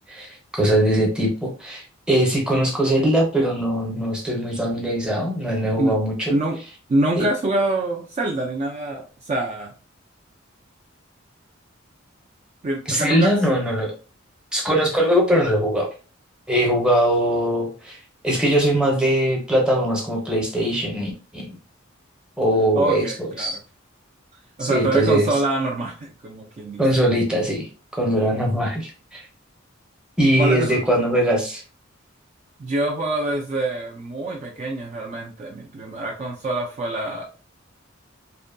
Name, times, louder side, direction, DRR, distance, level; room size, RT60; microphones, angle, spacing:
voice 1, 0.1-6.3 7.2-7.3 12.9-13.9 14.5-15.9 16.5-18.0 18.2-21.4 22.4-23.1 23.4-23.6 24.6-25.3 26.8-27.7 27.9-29.3 30.2-31.6, right 1 dB, 5° right, -2 dB, 0.7 m, -21 dB
voice 2, 6.9-9.7 12.6-13.3 22.7-23.6 24.6-26.8 30.4-30.8 32.6-37.2, right 2 dB, 35° right, -1 dB, 0.3 m, -25 dB
2.6 x 2.2 x 2.5 m, 0.35 s
head